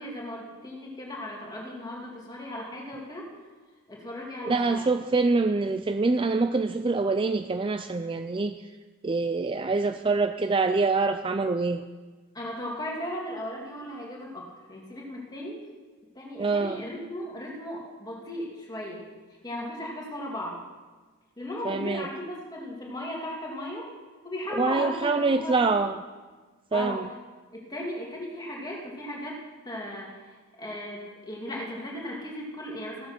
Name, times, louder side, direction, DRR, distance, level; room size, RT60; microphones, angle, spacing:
voice 1, 0.0-3.3 3.9-5.0 12.3-15.6 16.1-19.0 19.4-20.6 21.4-23.9 24.2-25.7 26.7-27.1 27.5-29.4 29.6-33.1, left 1 dB, 20° left, -3 dB, 2.4 m, -36 dB
voice 2, 4.5-8.6 9.0-11.8 16.4-16.8 21.6-22.1 24.5-26.0 26.7-27.1, right 3 dB, 25° right, 9 dB, 0.3 m, -25 dB
15.5 x 7.8 x 6.0 m, 1.3 s
head